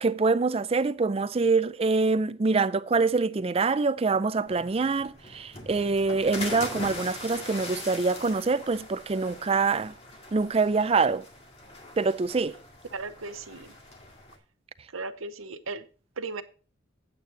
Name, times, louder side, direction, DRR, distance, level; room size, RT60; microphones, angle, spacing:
voice 1, 0.0-9.9 10.3-11.2 12.0-12.6, right 4 dB, 30° right, 0.4 m, -25 dB
sound 1, 4.5-14.4, left 2 dB, 30° left, 2.0 m, -41 dB
voice 2, 12.9-13.7 14.9-15.9 16.2-16.4, right 3 dB, 85° right, 0.8 m, -36 dB
9.1 x 8.4 x 3.8 m
head